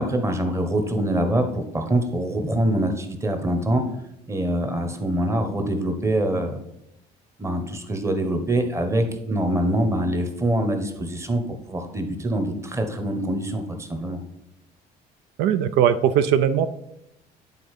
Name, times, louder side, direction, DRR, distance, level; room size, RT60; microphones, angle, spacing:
voice 1, 0.0-3.8 4.3-6.6 7.4-11.4 11.7-14.2, right 1 dB, 15° right, 5 dB, 1.1 m, -24 dB
voice 2, 15.4-16.7, right 9 dB, 85° right, 11 dB, 0.4 m, -19 dB
8.6 x 4.0 x 4.9 m, 0.80 s
cardioid pair, 110°, 17 cm